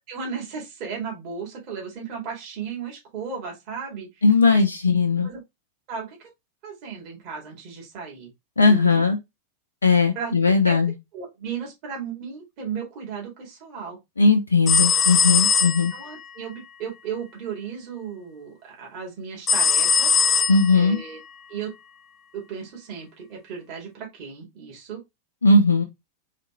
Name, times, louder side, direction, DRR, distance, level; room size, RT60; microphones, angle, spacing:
voice 1, 0.1-4.6 5.2-5.4 5.9-6.2 6.6-8.3 8.7-9.0 10.1-10.3 10.7-14.0 15.9-20.2 20.7-21.2 21.5-21.7 22.3-25.0, right 6 dB, 45° right, 2.3 m, -35 dB
voice 2, 4.2-5.3 8.6-9.2 9.8-10.9 14.2-15.9 20.5-21.0 25.4-25.8, left 3 dB, 75° left, 0.6 m, -18 dB
sound 1, 14.7-16.1 19.5-20.9, left 6 dB, 25° left, 0.3 m, -20 dB
4.2 x 3.6 x 3.1 m
figure-of-eight pair, 90°, 0 cm